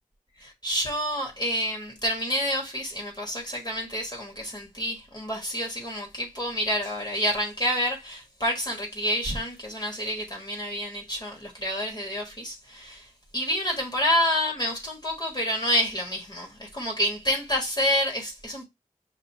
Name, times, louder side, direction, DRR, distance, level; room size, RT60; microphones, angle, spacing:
voice 1, 0.4-18.6, equal, 30° left, 1.4 m, -28 dB
6.0 x 2.6 x 2.7 m
wide cardioid pair, 50°, 14 cm